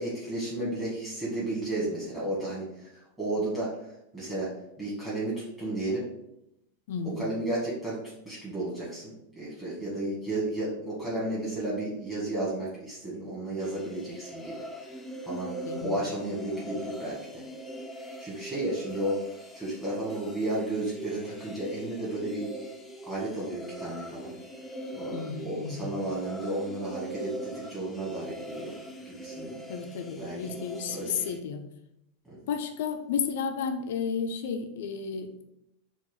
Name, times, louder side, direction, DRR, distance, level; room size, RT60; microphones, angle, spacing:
voice 1, 0.0-2.9 3.2-4.5 4.8-6.0 7.2-14.6 15.2-15.5 15.8-17.4 17.9-22.7 23.0-24.3 24.9-28.7 29.0-29.6 30.2-30.5 30.9-31.2 32.2-32.4, right 1 dB, 10° right, -9 dB, 1.6 m, -33 dB
voice 2, 6.9-7.3 15.7-16.0 25.1-26.0 29.7-31.6 32.5-35.4, left 6 dB, 55° left, 6 dB, 0.4 m, -32 dB
sound 1, 13.6-31.4, right 1 dB, 5° left, 0.5 m, -42 dB
4.6 x 2.3 x 4.7 m, 0.82 s
figure-of-eight pair, 90°, 0 cm